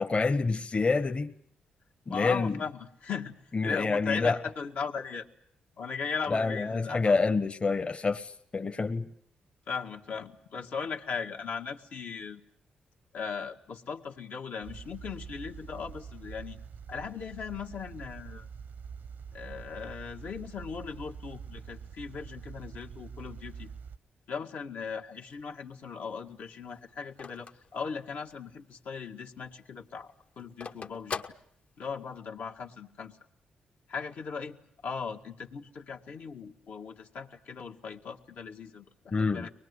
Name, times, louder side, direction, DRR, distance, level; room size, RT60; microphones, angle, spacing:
voice 1, 0.0-1.3 2.1-2.5 3.5-4.4 6.3-9.1 39.1-39.5, left 4 dB, 35° left, 7 dB, 1.3 m, -27 dB
voice 2, 2.1-5.3 5.8-7.2 9.7-12.4 13.1-16.6 16.9-18.5 19.3-23.7 24.3-31.2 31.8-33.2 33.9-34.6 34.8-39.5, left 5 dB, 75° left, 1 dB, 2.0 m, -38 dB
sound 1, 14.6-24.0, right 6 dB, 75° right, 1.0 m, -45 dB
Telephone, 25.2-28.6 29.0-29.1 29.3-32.2, left 5 dB, 50° left, 1.2 m, -42 dB
23.5 x 20.0 x 9.7 m, 0.67 s
cardioid pair, 65°, 3 cm